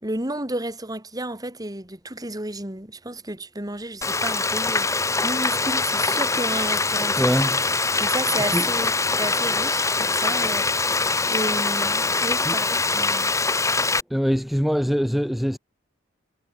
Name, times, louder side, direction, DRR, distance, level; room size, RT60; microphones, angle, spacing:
voice 1, 0.0-7.2 8.0-8.9 9.2-11.0 11.3-13.3, right 1 dB, 20° right, 3.8 m, -32 dB
Frying (food), 4.0-14.0, left 3 dB, 15° left, 1.4 m, -23 dB
voice 2, 7.2-7.6 8.5-8.7 12.4-12.6 14.1-15.6, equal, ahead, 1.6 m, -23 dB
head